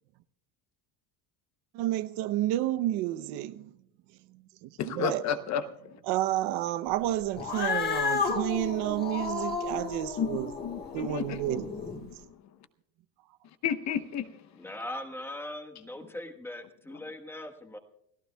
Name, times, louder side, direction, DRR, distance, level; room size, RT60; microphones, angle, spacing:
voice 1, 1.7-3.8 4.3-5.2 6.1-10.5 10.9-11.7, right 14 dB, 60° right, 0.8 m, -30 dB
voice 2, 4.8-5.6 10.2-10.3 10.6-11.4 12.0-12.2 13.6-14.3 16.9-17.0, left 8 dB, 40° left, 0.9 m, -31 dB
Cat, 7.3-12.0, left 5 dB, 20° left, 1.8 m, -32 dB
voice 3, 14.5-17.8, left 1 dB, 5° left, 1.3 m, -40 dB
29.5 x 15.0 x 2.3 m
cardioid pair, 155°, 44 cm